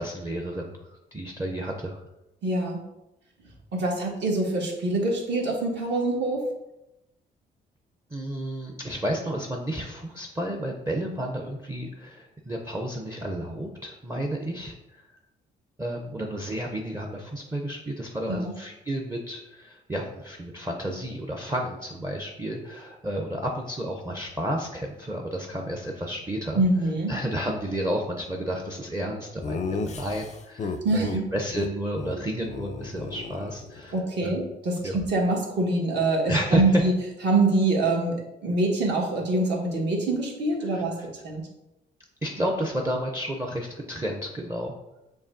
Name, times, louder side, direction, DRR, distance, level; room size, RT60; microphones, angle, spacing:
voice 1, 0.0-2.0 8.1-15.0 15.8-26.6 27.1-34.3 34.8-35.0 36.3-36.8 40.7-41.1 42.2-44.8, right 1 dB, 15° right, 1 dB, 0.5 m, -31 dB
voice 2, 2.4-2.8 3.7-6.5 18.3-18.5 26.5-27.1 30.8-31.2 33.9-36.9 37.2-40.9 41.2-41.4, right 2 dB, 60° right, -2 dB, 1.4 m, -25 dB
Laughter, 29.4-31.2 31.5-31.7 32.0-32.1 32.4-34.0, left 4 dB, 35° left, 0.4 m, -34 dB
6.8 x 2.8 x 2.6 m, 0.92 s
cardioid pair, 90°, 20 cm